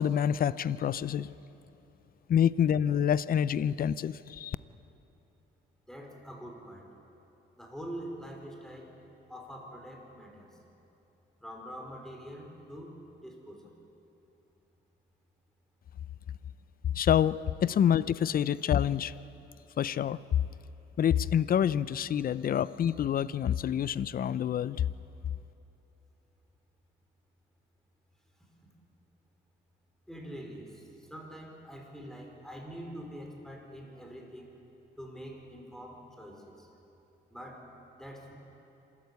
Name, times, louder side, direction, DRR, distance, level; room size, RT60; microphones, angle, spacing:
voice 1, 0.0-1.3 2.3-4.6 16.9-19.1 19.8-20.2 21.0-24.9, left 9 dB, 45° left, 18 dB, 0.5 m, -27 dB
voice 2, 5.9-6.9 7.6-8.9 9.3-10.6 11.4-13.0 13.2-13.7 30.1-34.5 35.0-36.7 37.3-37.7 37.9-38.3, equal, ahead, 1 dB, 4.6 m, -45 dB
27.0 x 13.5 x 8.2 m, 3.0 s
cardioid pair, 90°, 20 cm